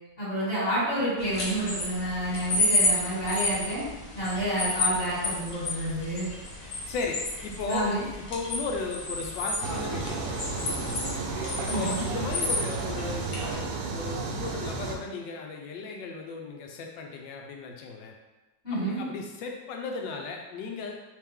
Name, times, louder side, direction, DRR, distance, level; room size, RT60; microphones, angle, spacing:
voice 1, 0.2-3.8 4.1-6.3 7.7-8.0 11.7-12.0 18.6-19.0, right 1 dB, 40° left, -9 dB, 1.6 m, -29 dB
sound 1, 1.2-13.6, left 2 dB, 60° left, 1.4 m, -31 dB
voice 2, 6.9-11.1 11.6-18.1 18.7-21.0, left 4 dB, 80° left, 2 dB, 1.3 m, -36 dB
sound 2, 9.6-15.0, right 4 dB, 75° right, 1.2 m, -32 dB
3.3 x 3.2 x 3.5 m, 1.1 s
omnidirectional pair, 2.0 m